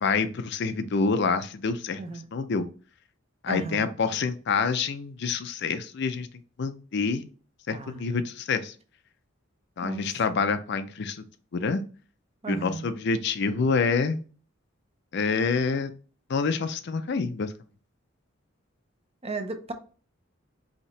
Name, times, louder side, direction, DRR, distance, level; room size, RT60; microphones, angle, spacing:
voice 1, 0.0-2.0 2.3-2.7 3.4-6.3 6.6-7.2 7.7-8.7 9.8-11.2 11.5-11.8 12.5-14.2 15.1-15.9 16.3-17.5, left 4 dB, 60° left, 0.5 m, -27 dB
voice 2, 3.5-3.9 7.7-8.2 9.8-10.0 12.4-13.0 19.2-19.7, right 3 dB, 30° right, 0.7 m, -35 dB
5.4 x 2.9 x 3.2 m
head